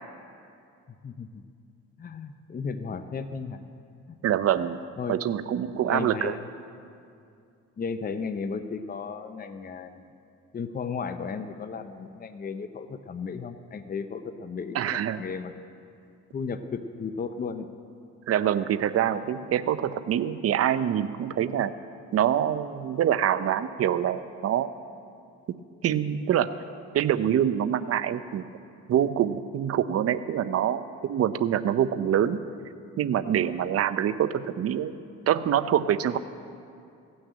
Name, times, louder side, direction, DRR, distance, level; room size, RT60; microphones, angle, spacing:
voice 1, 1.0-1.4 2.0-3.6 5.0-5.2 5.8-6.4 7.8-10.1 10.5-15.5 16.3-17.7, left 5 dB, 30° left, 9 dB, 0.7 m, -34 dB
voice 2, 4.2-4.8 5.1-6.3 14.7-15.2 18.3-21.7 22.1-24.7 25.8-26.5 26.9-28.4 28.9-32.4 33.0-34.9 35.3-36.2, right 10 dB, 50° right, 13 dB, 0.6 m, -25 dB
15.5 x 6.4 x 8.8 m, 2.4 s
cardioid pair, 90°, 30 cm